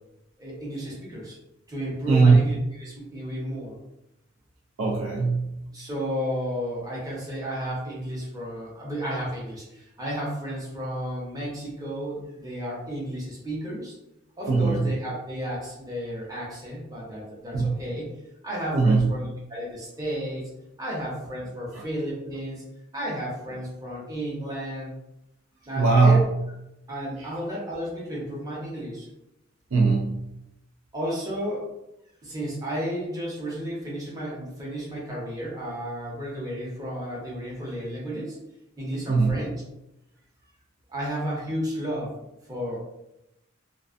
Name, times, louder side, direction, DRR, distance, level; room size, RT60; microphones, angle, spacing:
voice 1, 0.4-1.4 1.7-3.8 5.7-13.9 14.4-18.1 18.4-20.4 20.8-22.6 22.9-24.9 25.7-26.2 26.9-29.1 30.9-31.7 32.2-38.4 38.8-39.5 40.9-42.1 42.5-42.8, equal, 20° right, -5 dB, 0.8 m, -32 dB
voice 2, 4.8-5.6 14.5-14.9 17.5-17.7 18.7-19.1 21.7-21.8 25.7-26.2 27.2-27.3 29.7-30.2 39.1-39.4, right 4 dB, 80° right, -1 dB, 0.4 m, -20 dB
2.5 x 2.3 x 2.4 m, 0.88 s
head